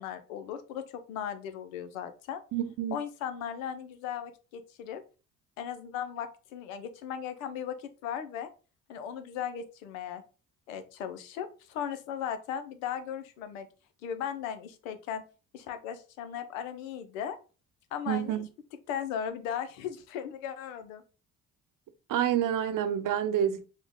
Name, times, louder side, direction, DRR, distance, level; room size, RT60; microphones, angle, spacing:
voice 1, 0.0-2.4 2.9-5.0 5.6-8.5 8.9-10.2 10.7-13.7 14.0-15.2 15.5-17.4 17.9-18.4 18.9-21.0, left 8 dB, 85° left, 0.6 m, -37 dB
voice 2, 2.5-3.0 18.1-18.5 22.1-23.7, right 10 dB, 55° right, 0.7 m, -28 dB
4.9 x 2.3 x 3.5 m
hypercardioid pair, 55°, 39 cm